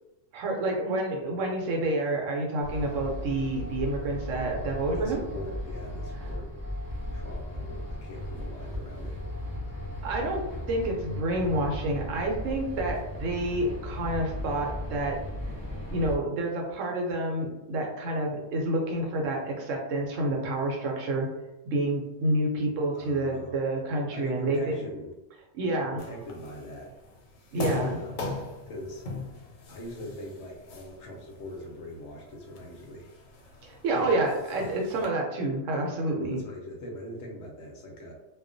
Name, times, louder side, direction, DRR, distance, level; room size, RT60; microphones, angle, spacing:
voice 1, 0.3-5.2 10.0-15.2 15.9-21.3 21.7-24.6 25.5-26.0 27.5-28.0 33.6-36.4, right 1 dB, 75° right, 0 dB, 1.0 m, -29 dB
sound 1, 2.6-16.2, left 1 dB, 35° left, 0.3 m, -36 dB
voice 2, 4.9-6.5 7.1-9.2 22.9-23.5 24.1-25.1 25.8-26.9 27.6-29.1 29.7-33.1 33.9-34.1 34.5-34.7 36.3-38.1, equal, 65° left, -1 dB, 0.8 m, -41 dB
sound 2, 26.0-35.1, left 3 dB, 90° left, 1.0 m, -40 dB
2.3 x 2.1 x 2.5 m, 0.99 s
omnidirectional pair, 1.3 m